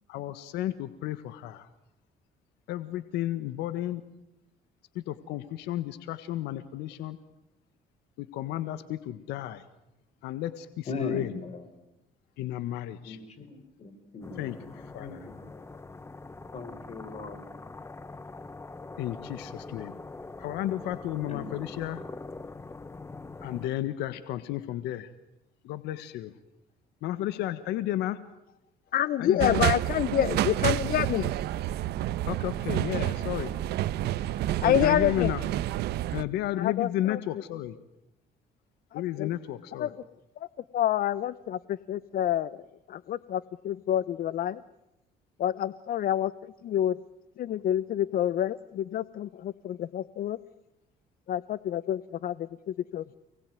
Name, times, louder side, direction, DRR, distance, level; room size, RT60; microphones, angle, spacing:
voice 1, 0.1-1.7 2.7-4.0 5.1-7.2 8.2-9.6 10.2-11.3 12.4-13.2 14.4-15.2 19.0-19.9 20.4-22.0 23.4-25.1 25.6-26.3 27.0-28.2 29.2-29.6 32.3-33.5 34.6-35.4 36.1-37.8 38.9-39.9, left 13 dB, 90° left, 12 dB, 1.6 m, -33 dB
voice 2, 10.9-11.8 13.0-15.6 16.5-17.4 21.2-21.8, left 3 dB, 40° left, 9 dB, 5.9 m, -39 dB
sound 1, 14.2-23.7, left 3 dB, 15° left, 1.0 m, -43 dB
voice 3, 28.9-31.3 34.6-35.3 36.6-37.2 38.9-39.3 39.7-40.0 40.4-40.5 40.7-44.6 45.4-47.0 47.4-50.4 51.3-53.2, left 11 dB, 60° left, 17 dB, 0.9 m, -28 dB
sound 2, 29.4-36.2, right 14 dB, 75° right, 1.1 m, -29 dB
29.5 x 20.5 x 9.4 m, 0.92 s
cardioid pair, 110°, 17 cm